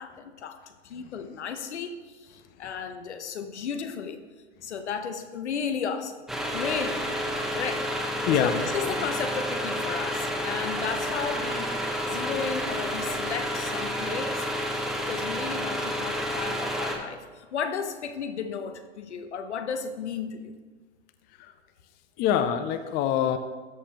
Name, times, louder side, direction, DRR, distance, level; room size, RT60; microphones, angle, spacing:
voice 1, 0.0-4.2 4.6-6.2 6.5-7.1 7.5-8.0 8.4-11.7 12.0-14.5 15.0-20.5, left 6 dB, 90° left, 8 dB, 0.8 m, -34 dB
sound 1, 6.3-17.0, equal, ahead, 0.8 m, -30 dB
voice 2, 8.3-8.6 12.2-12.3 21.4-21.5 22.2-23.4, left 9 dB, 30° left, 9 dB, 0.5 m, -25 dB
13.5 x 4.9 x 2.9 m, 1.4 s
hypercardioid pair, 120°, 33 cm